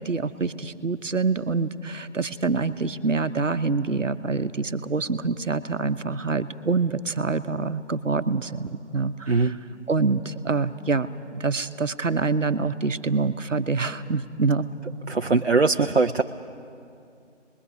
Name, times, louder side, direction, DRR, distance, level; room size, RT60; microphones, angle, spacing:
voice 1, 0.0-9.6 9.9-11.1 11.4-14.7, right 4 dB, 80° right, 11 dB, 1.0 m, -26 dB
voice 2, 15.1-16.2, right 4 dB, 60° right, 5 dB, 0.6 m, -21 dB
28.0 x 21.5 x 6.1 m, 2.5 s
figure-of-eight pair, 175°, 37 cm